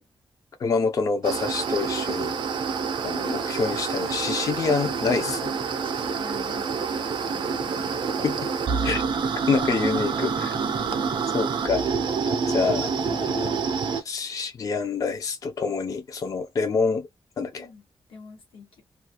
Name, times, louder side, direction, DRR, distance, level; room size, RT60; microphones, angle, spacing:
voice 1, 0.6-2.3 3.0-5.5 8.2-8.4 8.8-9.0 9.5-10.5 11.3-11.8 12.5-13.6 13.9-17.1 17.4-17.7, left 4 dB, 40° left, 0.4 m, -26 dB
sound 1, 1.2-14.0, right 5 dB, 60° right, 0.4 m, -27 dB
sound 2, 2.9-13.6, left 3 dB, 60° left, 0.9 m, -47 dB
voice 2, 5.8-6.9 10.7-11.0 17.5-17.8 18.1-18.8, left 5 dB, 85° left, 1.2 m, -45 dB
2.3 x 2.3 x 2.8 m
wide cardioid pair, 170°, 9 cm